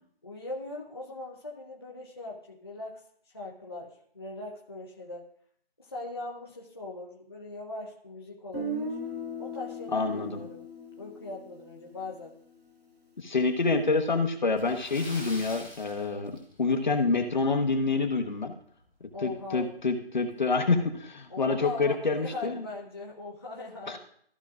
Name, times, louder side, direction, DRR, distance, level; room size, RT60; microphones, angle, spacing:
voice 1, 0.2-3.0 3.3-5.3 5.8-9.0 9.4-10.6 11.0-12.4 19.1-19.7 21.3-24.0, left 2 dB, 25° left, -3 dB, 0.7 m, -40 dB
Guitar, 8.5-12.5, equal, 75° right, 2.5 m, -38 dB
voice 2, 9.9-10.4 13.2-18.5 19.2-22.7 23.9-24.0, left 3 dB, 50° left, 5 dB, 1.1 m, -27 dB
Splash splatter, 14.6-16.9 17.2-17.4 17.8-17.9 19.4-19.5 19.8-19.9 20.5-20.8, left 1 dB, 5° right, 1.0 m, -45 dB
14.5 x 6.4 x 2.4 m, 0.64 s
figure-of-eight pair, 170°, 30 cm